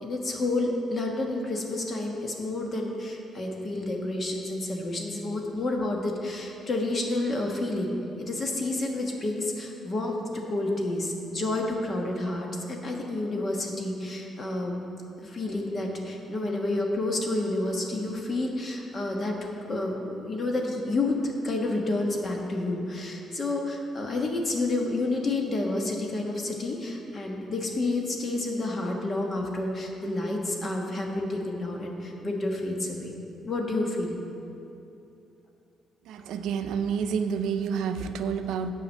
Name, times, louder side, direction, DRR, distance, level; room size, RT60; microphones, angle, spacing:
voice 1, 0.0-14.8 15.2-33.1 33.4-34.2, left 2 dB, 40° left, 1 dB, 1.2 m, -29 dB
voice 2, 36.1-38.7, right 6 dB, 85° right, 9 dB, 0.4 m, -29 dB
7.9 x 5.0 x 7.4 m, 2.8 s
cardioid pair, 90°, 0 cm